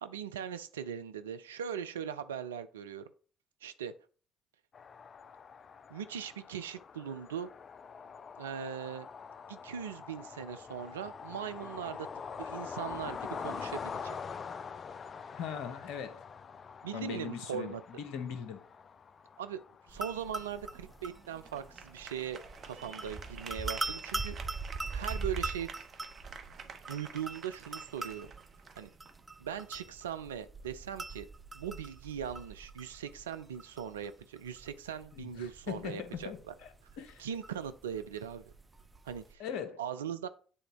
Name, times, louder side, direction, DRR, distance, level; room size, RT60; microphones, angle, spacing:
voice 1, 0.0-3.0 3.6-3.9 5.9-7.5 8.4-9.1 9.5-12.1 12.4-14.1 16.8-17.8 19.4-19.6 19.9-24.4 24.9-25.7 26.7-28.3 28.7-28.9 29.4-31.3 31.5-36.5 37.2-38.5 39.0-39.4 39.8-40.3, right 8 dB, 85° right, 11 dB, 0.4 m, -40 dB
sound 1, 4.7-23.3, left 6 dB, 40° left, 0.3 m, -45 dB
voice 2, 15.3-16.2 16.9-18.6 35.1-36.7 37.0-37.3 39.4-39.8, left 7 dB, 70° left, 9 dB, 0.9 m, -40 dB
sound 2, 19.9-39.3, right 3 dB, 20° right, 0.7 m, -42 dB
sound 3, 19.9-30.0, right 6 dB, 50° right, 0.9 m, -51 dB
7.7 x 3.8 x 4.7 m, 0.41 s
hypercardioid pair, 50°, 0 cm